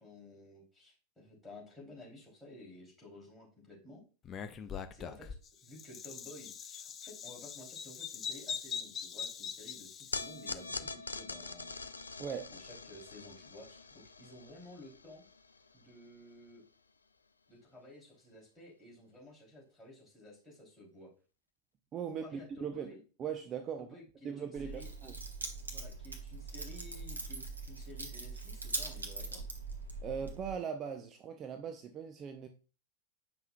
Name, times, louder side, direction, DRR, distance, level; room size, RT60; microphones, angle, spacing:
voice 1, 0.0-4.0 4.9-5.4 5.6-11.9 12.5-15.2 15.7-16.6 17.5-21.1 22.2-23.0 23.8-24.9 25.7-29.4, left 1 dB, 5° left, 3.0 m, -53 dB
Bird vocalization bird call bird song, 4.2-10.5, left 7 dB, 25° left, 0.5 m, -42 dB
sound 1, 10.1-16.5, left 3 dB, 75° left, 0.4 m, -44 dB
voice 2, 12.2-12.5 21.9-24.0 24.2-25.1 30.0-32.5, right 7 dB, 30° right, 0.5 m, -40 dB
Keys jangling, 24.5-30.5, right 3 dB, 80° right, 1.0 m, -42 dB
7.6 x 5.5 x 2.3 m
figure-of-eight pair, 90°, 0 cm